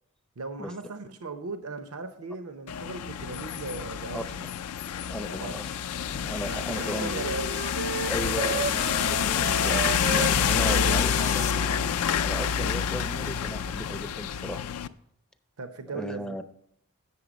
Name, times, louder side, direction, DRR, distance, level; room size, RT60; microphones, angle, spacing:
voice 1, 0.4-4.4 5.4-5.6 6.4-8.1 15.6-16.4, right 3 dB, 85° right, 8 dB, 0.7 m, -38 dB
sound 1, 2.7-14.9, left 8 dB, 90° left, 0.4 m, -28 dB
voice 2, 5.1-5.7 6.1-7.2 8.1-11.5 12.2-14.6 15.9-16.4, equal, 5° left, 8 dB, 0.4 m, -36 dB
sound 2, 6.5-11.5, left 11 dB, 50° left, 0.7 m, -38 dB
sound 3, 6.8-12.0, right 4 dB, 50° right, 0.5 m, -34 dB
8.4 x 6.7 x 5.1 m, 0.72 s
head